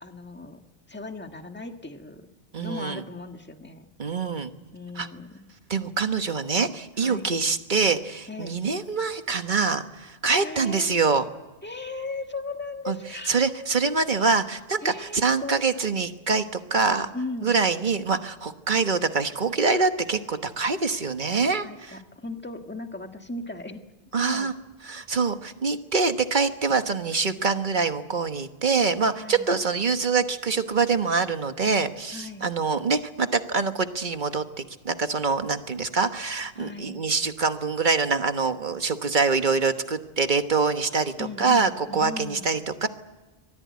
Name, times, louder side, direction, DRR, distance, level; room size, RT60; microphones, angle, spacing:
voice 1, 0.0-0.6 0.9-2.2 2.6-3.9 4.7-5.5 7.0-7.3 8.3-8.6 10.3-11.0 11.6-13.4 14.8-15.6 17.1-17.5 21.6-23.8 24.2-24.5 29.2-29.5 32.1-32.5 36.6-37.0 41.2-42.5, left 3 dB, 10° left, 5 dB, 1.6 m, -37 dB
voice 2, 2.5-3.0 4.0-4.5 4.9-5.1 5.7-11.3 12.9-13.0 13.3-16.4 16.7-17.1 17.4-22.0 24.1-24.5 24.8-34.4 34.8-42.9, right 4 dB, 50° right, 8 dB, 1.4 m, -25 dB
25.0 x 18.5 x 9.6 m, 1.2 s
omnidirectional pair, 1.1 m